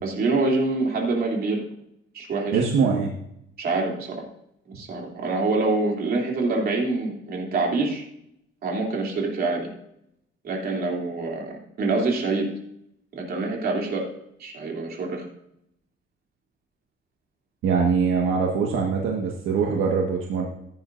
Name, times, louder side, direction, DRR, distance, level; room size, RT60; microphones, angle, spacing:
voice 1, 0.0-1.7 2.1-2.6 3.6-4.2 4.7-8.0 8.6-9.7 10.4-12.5 13.1-14.1 14.4-15.2, right 3 dB, 45° right, 0 dB, 3.1 m, -25 dB
voice 2, 2.5-3.2 17.6-20.5, right 5 dB, 70° right, 0 dB, 1.7 m, -23 dB
15.5 x 9.8 x 2.6 m, 0.76 s
cardioid pair, 145°, 21 cm